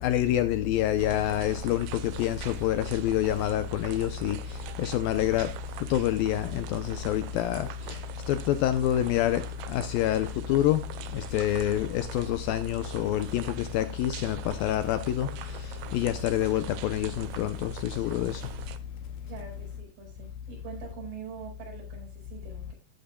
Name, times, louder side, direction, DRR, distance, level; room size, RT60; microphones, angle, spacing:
voice 1, 0.0-5.5 5.9-8.0 8.3-10.8 11.1-18.4, left 12 dB, 80° left, 2.1 m, -27 dB
sound 1, 1.0-18.8, right 10 dB, 80° right, 2.6 m, -43 dB
voice 2, 19.2-22.7, right 7 dB, 60° right, 6.9 m, -44 dB
14.0 x 10.5 x 2.3 m
omnidirectional pair, 4.9 m